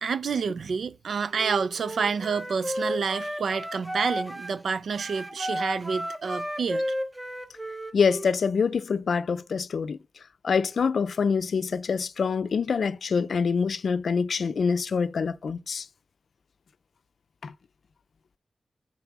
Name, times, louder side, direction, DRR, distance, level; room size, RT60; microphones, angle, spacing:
voice 1, 0.0-6.8, right 5 dB, 90° right, 0.4 m, -28 dB
Wind instrument woodwind instrument, 1.3-4.6 4.9-8.3, equal, 10° right, 0.7 m, -33 dB
voice 2, 7.9-10.0 10.4-15.9 17.4-17.5, left 5 dB, 75° left, 0.5 m, -25 dB
8.0 x 4.2 x 6.0 m
wide cardioid pair, 150°, 0 cm